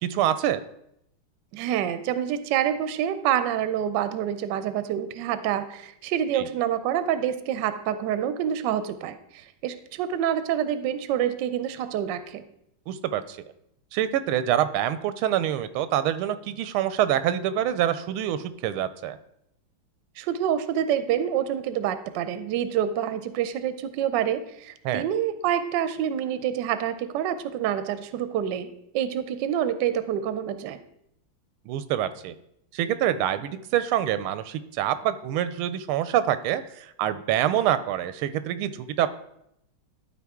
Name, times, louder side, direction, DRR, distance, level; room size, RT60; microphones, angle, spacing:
voice 1, 0.0-0.6 6.3-6.5 12.9-13.4 13.9-19.2 24.8-25.1 31.7-32.3 32.7-39.1, right 11 dB, 90° right, 13 dB, 1.5 m, -26 dB
voice 2, 1.5-12.4 20.2-28.7 28.9-30.8, right 10 dB, 70° right, 12 dB, 1.1 m, -27 dB
12.0 x 4.5 x 3.6 m, 0.76 s
omnidirectional pair, 2.3 m